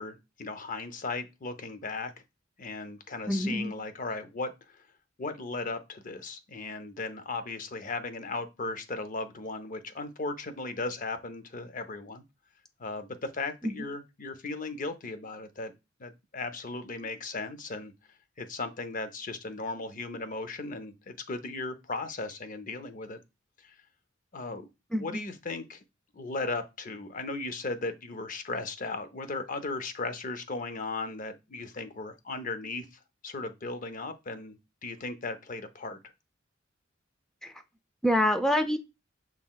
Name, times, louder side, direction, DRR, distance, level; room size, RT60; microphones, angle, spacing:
voice 1, 0.0-2.1 2.6-4.8 5.2-12.2 12.8-15.7 16.0-17.9 18.4-23.2 23.6-23.7 24.3-25.8 26.1-32.9 33.2-36.0, left 3 dB, 45° left, 0.6 m, -36 dB
voice 2, 3.3-3.7 13.6-13.7 24.9-25.0 37.4-37.5 38.0-38.8, left 1 dB, 5° left, 0.5 m, -26 dB
6.0 x 3.7 x 2.3 m
head